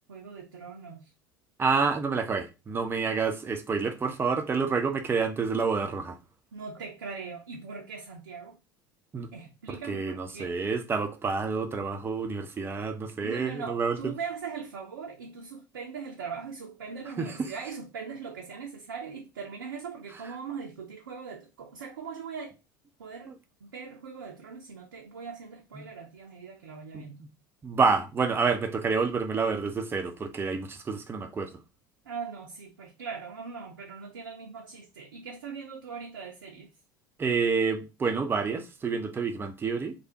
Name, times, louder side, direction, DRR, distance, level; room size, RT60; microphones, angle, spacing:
voice 1, 0.1-1.1 6.5-8.6 9.3-10.6 13.2-22.5 23.0-23.4 23.6-27.2 32.1-36.7, right 5 dB, 70° right, 0.5 m, -40 dB
voice 2, 1.6-6.2 9.1-9.3 9.9-14.1 17.2-17.3 25.8-25.9 26.9-27.0 27.6-31.5 37.2-39.9, right 5 dB, 20° right, 0.5 m, -28 dB
3.3 x 2.3 x 2.8 m
figure-of-eight pair, 70°, 11 cm